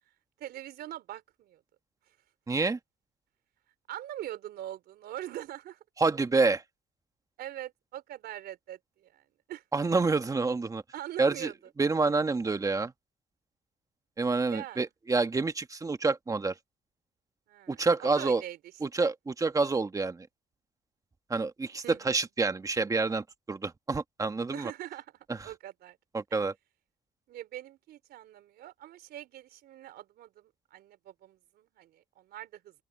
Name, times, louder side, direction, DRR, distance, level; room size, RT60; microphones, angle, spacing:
voice 1, 0.4-1.6 3.9-5.8 7.4-9.2 9.5-9.6 10.9-11.6 14.5-14.8 17.5-18.6 19.0-19.1 21.8-22.1 24.5-25.1 25.4-26.0 27.3-32.7, right 12 dB, 70° right, 3.6 m, -43 dB
voice 2, 2.5-2.8 6.0-6.6 9.7-10.8 11.2-11.5 11.8-12.9 14.2-16.5 17.7-18.4 18.8-20.3 21.3-24.7 26.1-26.5, right 3 dB, 20° right, 1.5 m, -28 dB
open air
cardioid pair, 110°, 17 cm